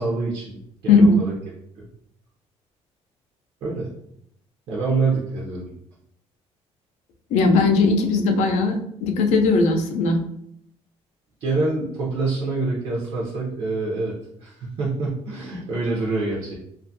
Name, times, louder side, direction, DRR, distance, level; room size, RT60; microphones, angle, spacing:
voice 1, 0.0-1.3 1.7-1.9 3.6-3.9 4.7-5.7 11.4-14.1 14.4-16.6, right 3 dB, 55° right, -3 dB, 0.5 m, -26 dB
voice 2, 7.3-8.8 9.0-10.2, left 3 dB, 80° left, 3 dB, 0.5 m, -18 dB
2.5 x 2.3 x 2.6 m, 0.74 s
cardioid pair, 170°, 12 cm